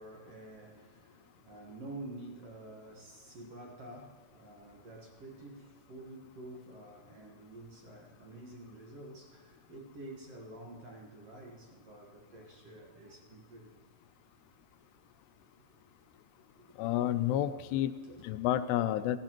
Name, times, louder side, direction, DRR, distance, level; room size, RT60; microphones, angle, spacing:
voice 1, 0.0-13.9 16.6-16.7 18.0-18.5, right 1 dB, 75° right, 1.4 m, -49 dB
voice 2, 16.8-17.9 18.2-19.2, left 12 dB, 80° left, 2.5 m, -30 dB
17.5 x 15.5 x 3.0 m
omnidirectional pair, 5.0 m